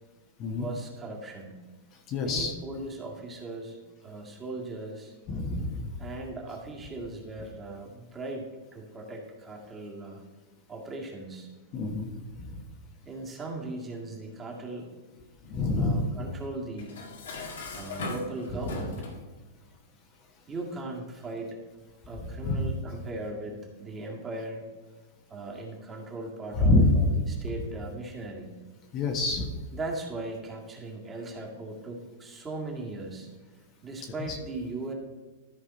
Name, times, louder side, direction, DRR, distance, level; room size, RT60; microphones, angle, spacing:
voice 1, 0.6-1.6 2.2-5.1 6.0-10.2 10.7-11.5 13.1-14.9 15.8-17.0 17.8-19.1 20.5-21.6 22.0-24.6 25.3-28.5 29.7-33.3 33.8-34.9, right 2 dB, 20° right, -1 dB, 1.9 m, -38 dB
voice 2, 2.1-2.5 5.3-5.9 11.7-12.1 12.4-12.6 15.5-16.1 22.4-22.6 26.6-26.9 28.9-29.5 34.3-34.4, left 2 dB, 35° left, 3 dB, 1.2 m, -26 dB
Dishes pots and pans, 16.8-19.2, left 3 dB, 80° left, 1.9 m, -38 dB
13.5 x 4.9 x 4.2 m, 1.3 s
hypercardioid pair, 135°, 0 cm